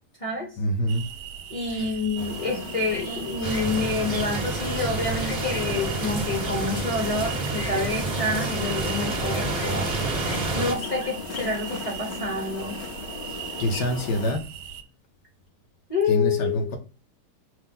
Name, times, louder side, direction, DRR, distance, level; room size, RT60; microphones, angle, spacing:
voice 1, 0.6-1.0 1.7-1.9 13.6-14.4 16.1-16.8, equal, 65° left, 4 dB, 1.2 m, -25 dB
sound 1, 0.9-14.8, right 8 dB, 80° right, 0.9 m, -39 dB
voice 2, 1.5-9.9 10.5-12.8 15.9-16.7, left 3 dB, 30° left, -1 dB, 0.6 m, -28 dB
sound 2, 2.2-14.3, left 4 dB, 80° left, 0.5 m, -37 dB
sound 3, 3.4-10.7, right 3 dB, 50° right, 0.6 m, -29 dB
5.5 x 2.0 x 3.6 m, 0.33 s
omnidirectional pair, 2.3 m